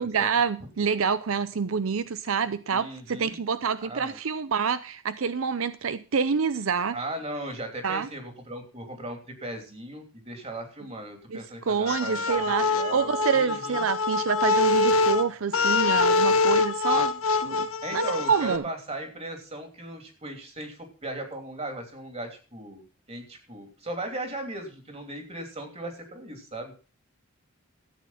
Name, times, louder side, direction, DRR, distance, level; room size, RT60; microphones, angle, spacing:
voice 1, 0.0-7.0 7.8-8.1 11.3-11.4 11.7-18.6, right 6 dB, 75° right, 0.6 m, -27 dB
voice 2, 2.7-3.4 3.8-4.2 6.9-13.8 17.8-22.8 23.1-26.7, right 1 dB, 30° right, 3.0 m, -37 dB
sound 1, 11.9-18.6, left 3 dB, 85° left, 1.3 m, -24 dB
13.5 x 8.6 x 5.7 m
head